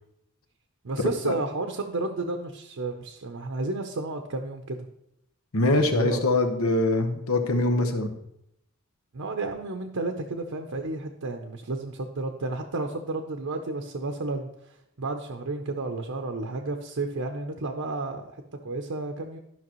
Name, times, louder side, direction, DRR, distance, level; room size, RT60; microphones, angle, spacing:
voice 1, 0.8-4.8 5.8-6.3 9.1-19.4, right 2 dB, 70° right, 4 dB, 0.7 m, -32 dB
voice 2, 5.5-8.1, left 2 dB, 80° left, 6 dB, 1.0 m, -23 dB
12.5 x 5.8 x 3.0 m, 0.80 s
head